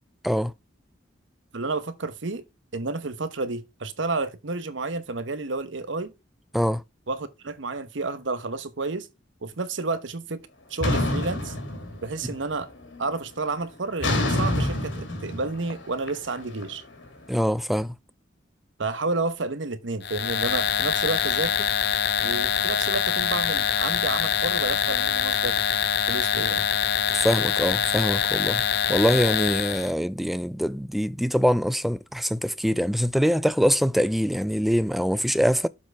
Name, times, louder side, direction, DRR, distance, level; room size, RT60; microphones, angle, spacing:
voice 1, 1.5-2.4 2.7-6.1 7.1-9.1 9.4-10.4 10.7-11.5 12.0-12.7 13.0-16.8 18.8-21.7 22.2-25.6 26.1-26.7, right 3 dB, 75° right, 1.0 m, -30 dB
sound 1, 10.8-12.4 12.7-13.1 14.0-17.1, left 1 dB, 80° left, 2.2 m, -27 dB
voice 2, 17.3-18.0 27.1-28.6 28.9-35.7, equal, ahead, 0.3 m, -24 dB
sound 2, 20.0-29.9, left 8 dB, 60° left, 0.7 m, -24 dB
7.4 x 4.5 x 4.6 m
head